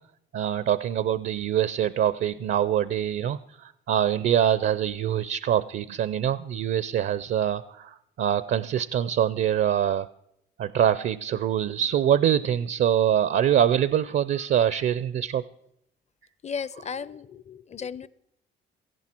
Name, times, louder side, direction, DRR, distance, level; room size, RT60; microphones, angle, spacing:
voice 1, 0.3-10.1 10.6-15.4, right 10 dB, 60° right, 16 dB, 0.5 m, -24 dB
voice 2, 16.4-18.1, left 6 dB, 35° left, 19 dB, 0.6 m, -35 dB
17.0 x 15.5 x 4.4 m, 0.77 s
cardioid pair, 90°, 20 cm